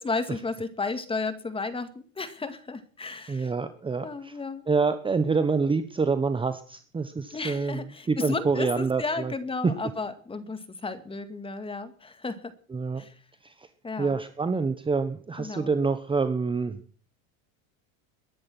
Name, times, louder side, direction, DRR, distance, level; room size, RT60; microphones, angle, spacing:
voice 1, 0.0-3.5 4.0-4.6 7.3-12.5 13.0-13.1 13.8-14.1 15.4-15.7, left 3 dB, 15° left, 11 dB, 2.0 m, -33 dB
voice 2, 3.3-4.4 4.7-9.3 12.7-13.0 13.4-13.7 14.0-16.8, right 4 dB, 10° right, 10 dB, 1.1 m, -27 dB
21.5 x 11.0 x 6.0 m, 0.42 s
supercardioid pair, 130°, 40 cm